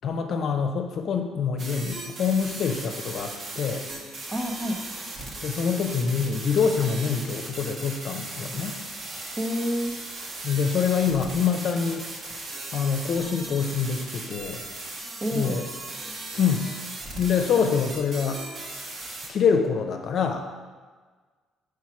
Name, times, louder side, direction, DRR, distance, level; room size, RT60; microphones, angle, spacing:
voice 1, 0.0-3.9 5.4-8.8 10.4-12.1 12.7-14.6 15.3-15.6 16.4-16.7 17.2-18.4 19.3-20.4, left 6 dB, 60° left, 5 dB, 0.6 m, -25 dB
sound 1, 1.6-19.3, right 2 dB, 50° right, 1.2 m, -37 dB
voice 2, 4.3-4.8 9.3-9.9 15.2-15.7, equal, 20° right, 3 dB, 0.9 m, -28 dB
4.8 x 4.6 x 5.8 m, 1.4 s
cardioid pair, 85°, 0 cm